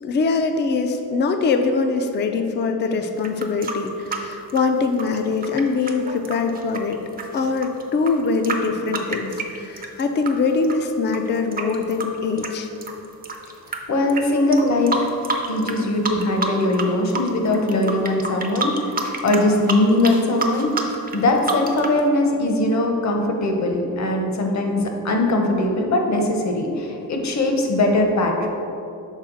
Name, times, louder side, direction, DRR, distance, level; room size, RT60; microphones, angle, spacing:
voice 1, 0.0-7.0 7.3-12.7, left 4 dB, 30° left, 6 dB, 0.4 m, -23 dB
sound 1, 3.2-10.3 10.6-13.8 14.1-14.2 14.5-15.8 16.0-16.9 17.1-22.0, right 3 dB, 25° right, 0.5 m, -28 dB
voice 2, 13.9-15.1 15.5-20.7 21.1-28.5, left 1 dB, 50° left, 2 dB, 0.8 m, -20 dB
6.4 x 4.2 x 3.8 m, 2.7 s
cardioid pair, 125°, 36 cm